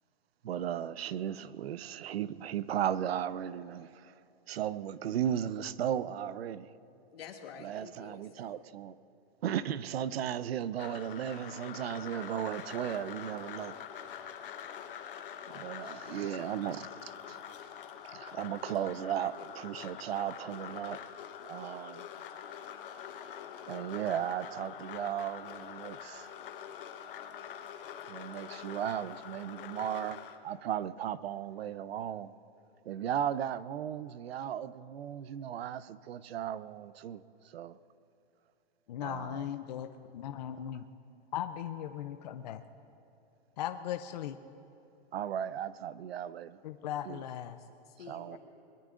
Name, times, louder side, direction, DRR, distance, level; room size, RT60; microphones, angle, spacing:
voice 1, 0.4-4.1 4.5-6.7 7.6-9.0 9.4-13.8 15.5-17.4 18.0-21.0 21.5-22.1 23.7-26.3 28.1-32.3 32.9-37.2 37.5-37.8 39.0-39.5 45.1-46.6 47.0-47.2 48.1-48.4, right 10 dB, 80° right, 16 dB, 0.6 m, -36 dB
voice 2, 7.1-8.5 47.6-48.4, left 7 dB, 75° left, 2 dB, 2.1 m, -49 dB
sound 1, 10.8-30.4, left 9 dB, 60° left, 1.0 m, -45 dB
voice 3, 38.9-40.8 41.3-42.6 43.6-44.4 46.6-47.6, left 10 dB, 45° left, 8 dB, 0.5 m, -38 dB
21.5 x 21.5 x 2.5 m, 2.7 s
hypercardioid pair, 165°, 30 cm